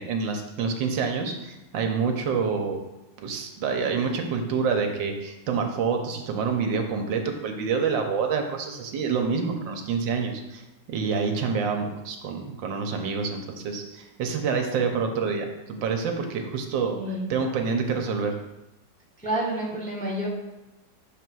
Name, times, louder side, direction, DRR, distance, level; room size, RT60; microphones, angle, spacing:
voice 1, 0.0-2.8 3.2-10.6 10.9-17.0 17.3-18.3, right 5 dB, 85° right, 4 dB, 1.5 m, -27 dB
voice 2, 19.2-20.3, right 1 dB, 5° left, -3 dB, 0.9 m, -29 dB
6.6 x 3.4 x 6.1 m, 0.99 s
omnidirectional pair, 2.0 m